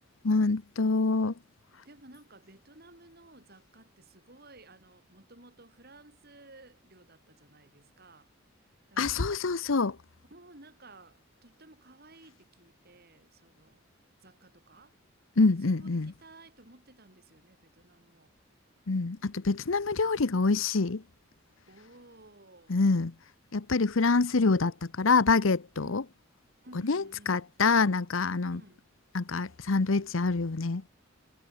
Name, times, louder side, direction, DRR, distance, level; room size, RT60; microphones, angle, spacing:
voice 1, 0.2-1.3 9.0-10.0 15.4-16.1 18.9-21.0 22.7-23.1 23.5-26.0 26.8-28.6 29.1-30.8, left 4 dB, 75° left, 0.8 m, -26 dB
voice 2, 1.8-8.3 8.9-9.5 10.3-13.8 14.2-15.0 15.6-18.3 21.7-22.8 25.8-26.1 26.6-27.4 28.5-28.9, right 2 dB, 50° right, 7.7 m, -55 dB
head